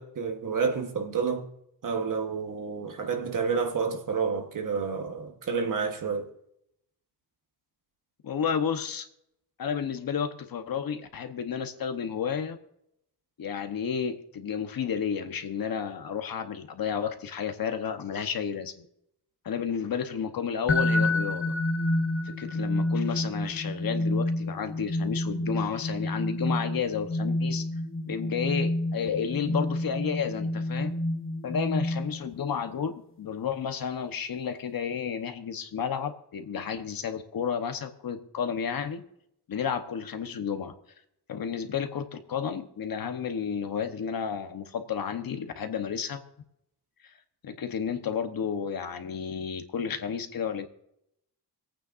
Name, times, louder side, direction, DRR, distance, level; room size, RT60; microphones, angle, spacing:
voice 1, 0.0-1.5 1.8-6.3, right 5 dB, 50° right, 1.3 m, -29 dB
voice 2, 8.2-9.1 9.6-12.6 13.4-18.8 19.4-21.5 22.2-27.6 28.0-30.9 31.4-39.0 39.5-40.7 41.3-46.2 47.4-50.7, left 7 dB, 55° left, 1.1 m, -31 dB
sound 1, 20.7-32.4, left 1 dB, 30° left, 0.8 m, -29 dB
27.0 x 9.0 x 2.6 m
wide cardioid pair, 175°, 41 cm